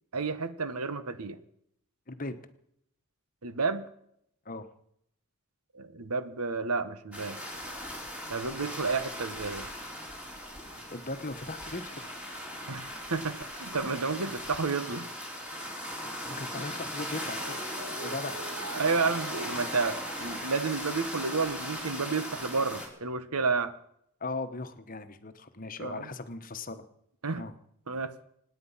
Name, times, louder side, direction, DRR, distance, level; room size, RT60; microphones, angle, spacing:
voice 1, 0.1-1.4 3.4-3.9 5.7-7.4 8.3-9.7 12.7-15.1 18.7-23.7 25.8-26.1 27.2-27.5 27.9-28.1, right 4 dB, 90° right, 13 dB, 1.2 m, -31 dB
sound 1, 7.1-22.9, equal, 5° right, 3.4 m, -38 dB
voice 2, 10.9-12.1 16.2-17.6 18.0-18.4 24.2-26.8 27.4-27.5, left 2 dB, 40° left, 10 dB, 1.2 m, -38 dB
Mallet percussion, 17.3-22.2, right 3 dB, 55° right, 0.8 m, -45 dB
25.5 x 9.8 x 5.7 m, 0.74 s
head